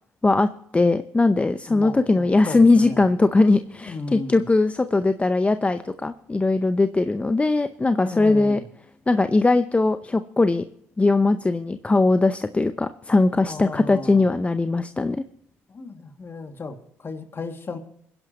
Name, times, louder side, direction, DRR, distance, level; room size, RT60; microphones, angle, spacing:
voice 1, 0.2-8.6 9.1-10.6 11.0-15.2, left 3 dB, 20° left, 11 dB, 0.7 m, -20 dB
voice 2, 1.7-3.0 3.8-4.5 8.0-8.7 13.4-14.2 15.7-17.8, left 3 dB, 35° left, 5 dB, 2.2 m, -35 dB
22.5 x 10.5 x 3.0 m, 0.73 s
hypercardioid pair, 60°, 7 cm